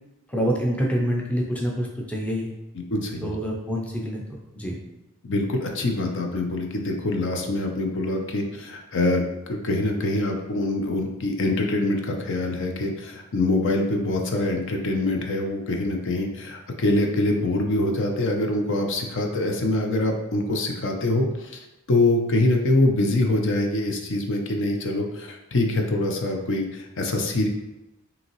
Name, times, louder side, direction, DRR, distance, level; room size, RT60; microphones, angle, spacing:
voice 1, 0.3-2.5 3.2-4.8, equal, 5° left, -2 dB, 0.5 m, -26 dB
voice 2, 2.9-3.3 5.2-21.6 21.9-27.5, left 2 dB, 55° left, 2 dB, 0.6 m, -24 dB
5.3 x 2.8 x 3.0 m, 0.98 s
head